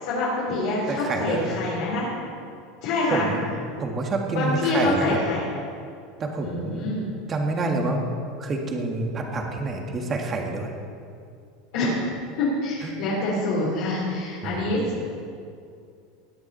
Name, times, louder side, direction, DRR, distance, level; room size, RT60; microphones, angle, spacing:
voice 1, 0.0-2.1 2.8-3.3 4.3-5.5 6.4-7.0 11.7-12.0 12.4-15.3, left 2 dB, 70° left, -8 dB, 3.8 m, -26 dB
voice 2, 0.9-1.6 3.1-3.5 3.8-5.2 6.2-6.9 7.3-8.0 8.4-10.7 12.8-12.9 14.4-14.9, right 3 dB, 30° right, 2 dB, 1.8 m, -28 dB
17.0 x 9.6 x 4.4 m, 2.4 s
supercardioid pair, 130°, 0 cm